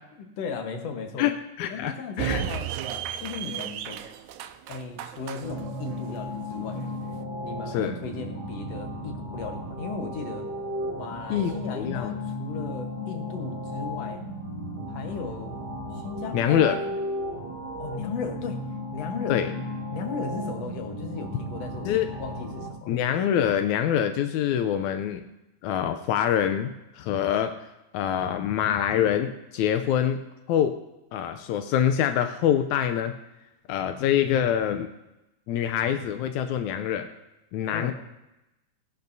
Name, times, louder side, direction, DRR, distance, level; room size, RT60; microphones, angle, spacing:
voice 1, 0.2-1.3 1.7-2.7 3.2-4.0 4.7-6.8 7.4-10.5 10.9-14.2 14.9-15.6 15.9-16.9 17.8-18.7 18.9-19.5 19.9-23.0 37.7-37.9, left 4 dB, 65° left, 4 dB, 2.2 m, -36 dB
voice 2, 1.6-2.4 7.7-7.9 11.3-12.2 16.3-16.8 19.3-19.5 21.9-22.1 22.9-25.2 25.6-27.5 27.9-30.2 30.5-30.7 31.1-33.1 33.7-34.9 35.5-37.1 37.5-37.9, left 9 dB, 85° left, 7 dB, 2.0 m, -25 dB
sound 1, 2.2-7.2, right 9 dB, 80° right, 2.0 m, -34 dB
sound 2, 5.4-22.7, left 1 dB, 15° left, 3.0 m, -35 dB
18.0 x 11.0 x 2.7 m, 0.94 s
omnidirectional pair, 3.3 m